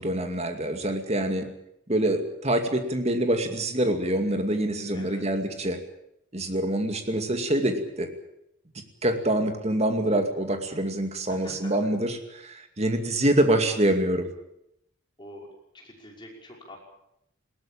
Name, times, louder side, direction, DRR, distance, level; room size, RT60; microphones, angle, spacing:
voice 1, 0.0-1.5 1.9-5.8 6.3-8.1 9.0-14.3, right 1 dB, 30° right, 6 dB, 2.4 m, -25 dB
voice 2, 4.9-5.2 11.3-12.0 15.2-15.5 15.7-16.8, left 1 dB, 20° left, -1 dB, 5.7 m, -45 dB
20.5 x 17.5 x 8.7 m, 0.79 s
head